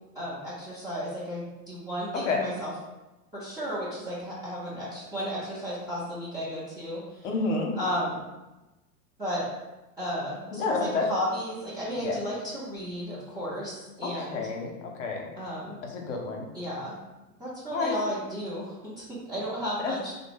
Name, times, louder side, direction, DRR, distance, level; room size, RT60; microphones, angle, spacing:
voice 1, 0.1-2.7 3.3-7.3 7.8-8.2 9.2-9.5 10.0-14.4 15.4-15.8 16.5-16.9 17.4-20.1, equal, 10° right, -10 dB, 0.4 m, -33 dB
voice 2, 2.1-2.5 7.2-7.7 10.5-11.1 12.0-12.2 14.0-14.7 15.0-15.3 15.9-16.5 17.7-17.9 19.8-19.9, left 4 dB, 50° left, 1 dB, 0.7 m, -29 dB
3.5 x 2.0 x 3.3 m, 1.1 s
figure-of-eight pair, 90°, 47 cm